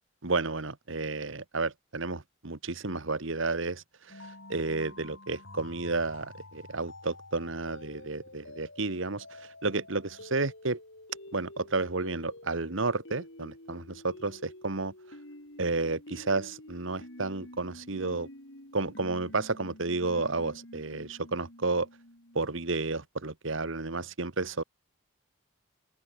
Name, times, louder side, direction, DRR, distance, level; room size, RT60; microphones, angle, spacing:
voice 1, 0.2-10.8 11.3-14.9 15.6-18.3 18.7-21.9 22.3-24.6, right 3 dB, 65° right, 1.5 m, -32 dB
sound 1, 4.1-22.6, left 1 dB, 60° left, 5.7 m, -49 dB
head